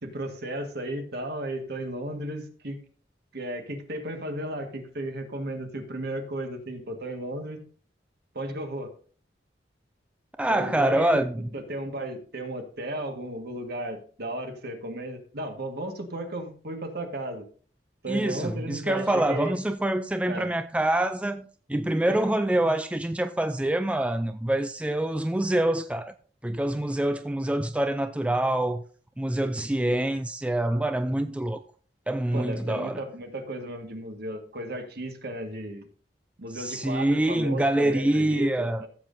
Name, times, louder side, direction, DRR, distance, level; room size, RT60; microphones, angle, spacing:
voice 1, 0.0-2.8 3.3-7.6 8.3-8.9 10.5-17.4 18.0-19.6 20.2-20.5 22.1-22.2 32.3-35.9 36.4-38.9, right 1 dB, 60° right, 1.7 m, -34 dB
voice 2, 10.4-11.5 18.1-26.1 26.4-28.8 29.2-31.6 32.1-33.0 36.5-38.8, right 1 dB, 5° right, 0.3 m, -26 dB
14.5 x 7.5 x 2.7 m
head